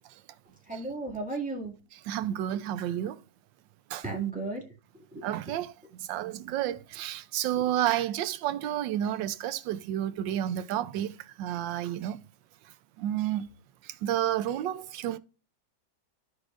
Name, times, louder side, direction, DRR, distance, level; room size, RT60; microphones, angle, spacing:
voice 1, 0.7-1.8 4.0-4.7 4.9-5.3 7.6-7.7, right 3 dB, 5° right, 1.9 m, -34 dB
voice 2, 2.1-3.2 3.9-4.0 5.2-12.2 13.0-13.5 13.8-15.2, right 12 dB, 90° right, 1.3 m, -31 dB
14.5 x 4.8 x 2.5 m
omnidirectional pair, 1.9 m